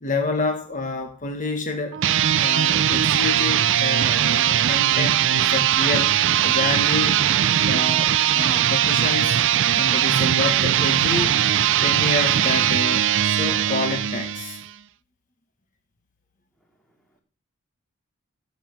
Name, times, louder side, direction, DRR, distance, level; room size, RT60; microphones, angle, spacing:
voice 1, 0.0-2.0 2.4-6.1 6.4-7.3 7.6-9.4 9.7-11.4 11.8-14.6, left 3 dB, 35° left, 5 dB, 1.3 m, -28 dB
sound 1, 1.9-14.7, right 10 dB, 55° right, 0.5 m, -20 dB
voice 2, 16.6-17.2, right 1 dB, 5° left, 1 dB, 2.5 m, -67 dB
15.5 x 6.0 x 7.2 m, 0.42 s
head